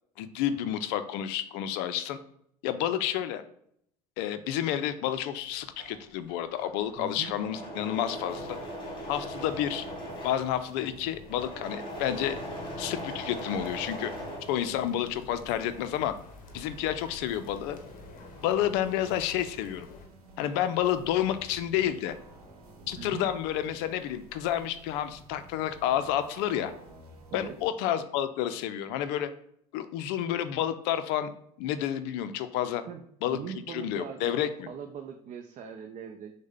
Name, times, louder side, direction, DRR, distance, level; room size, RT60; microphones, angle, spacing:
voice 1, 0.2-2.2 2.6-3.4 4.2-8.6 9.1-9.8 10.2-12.4 12.8-14.1 14.5-16.1 16.5-17.8 18.4-19.9 20.4-22.2 22.9-26.7 27.3-29.3 29.7-31.3 31.6-32.8 33.2-33.4 33.7-34.7, left 11 dB, 65° left, 11 dB, 0.4 m, -30 dB
Engine / Mechanisms, 5.5-15.1 15.5-17.8 18.1-18.8, equal, 25° left, 1.9 m, -40 dB
voice 2, 7.0-7.3 22.9-23.3 27.3-27.6 32.9-33.0 33.3-34.3 34.7-36.3, right 7 dB, 40° right, 5 dB, 0.5 m, -40 dB
sound 1, 8.0-27.6, right 2 dB, 85° right, 0.9 m, -52 dB
sound 2, 12.0-20.1, left 4 dB, 45° left, 0.8 m, -50 dB
6.1 x 2.1 x 3.6 m, 0.70 s
hypercardioid pair, 65°, 19 cm